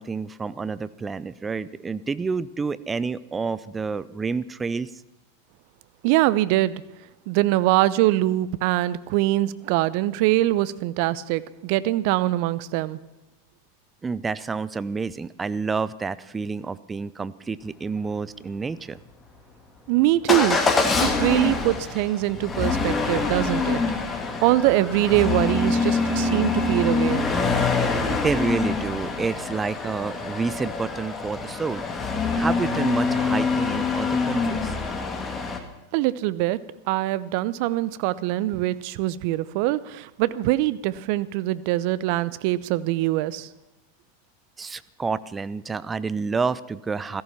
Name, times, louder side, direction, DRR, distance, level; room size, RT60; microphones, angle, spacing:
voice 1, 0.0-4.9 14.0-19.0 28.1-31.8 32.4-34.8 44.6-47.2, right 4 dB, 15° right, 0.7 m, -29 dB
voice 2, 6.0-6.8 7.3-13.0 19.9-20.6 21.0-23.8 24.1-27.3 35.9-43.5, right 16 dB, 55° right, 0.7 m, -23 dB
Motor vehicle (road) / Engine starting / Accelerating revving vroom, 20.3-35.6, left 4 dB, 20° left, 2.4 m, -25 dB
16.5 x 14.0 x 5.7 m
hypercardioid pair, 95°, 0 cm